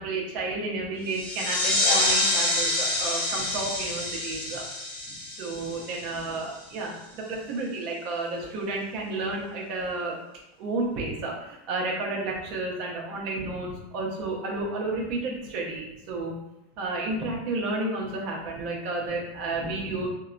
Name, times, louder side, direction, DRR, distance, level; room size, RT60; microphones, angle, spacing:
voice 1, 0.0-4.6 5.1-10.2 10.6-16.4 16.8-20.1, right 2 dB, 50° right, -2 dB, 0.7 m, -31 dB
sound 1, 1.1-6.4, left 2 dB, 60° left, 0.8 m, -27 dB
2.7 x 2.2 x 2.4 m, 0.90 s
supercardioid pair, 145°, 0 cm